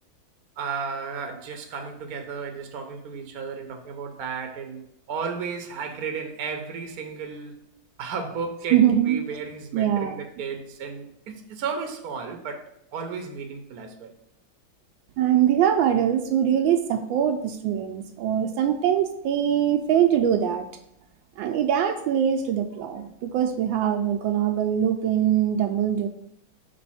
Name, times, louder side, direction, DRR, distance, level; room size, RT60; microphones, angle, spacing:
voice 1, 0.6-7.5 8.0-14.1, right 5 dB, 60° right, 1.1 m, -34 dB
voice 2, 8.7-9.2 9.7-10.2 15.2-20.7 21.4-26.1, right 9 dB, 85° right, 1.3 m, -22 dB
5.1 x 3.4 x 5.6 m
omnidirectional pair, 2.1 m